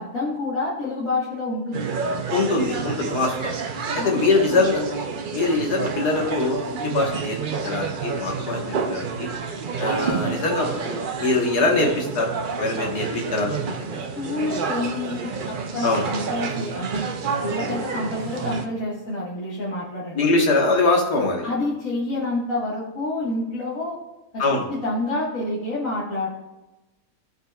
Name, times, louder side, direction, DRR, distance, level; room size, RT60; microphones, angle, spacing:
voice 1, 0.0-1.9 4.0-4.2 4.5-4.6 14.2-20.2 21.4-24.0 24.3-24.4 24.7-26.3, left 2 dB, 55° left, -8 dB, 1.9 m, -28 dB
sound 1, 1.7-18.7, right 5 dB, 65° right, 0.5 m, -29 dB
voice 2, 2.3-3.5 3.9-4.8 5.3-9.3 9.8-12.3 12.6-13.7 15.8-16.1 20.1-21.5 24.4-24.7, left 3 dB, 85° left, 0 dB, 1.9 m, -23 dB
14.5 x 5.3 x 2.3 m, 1.0 s
omnidirectional pair, 1.7 m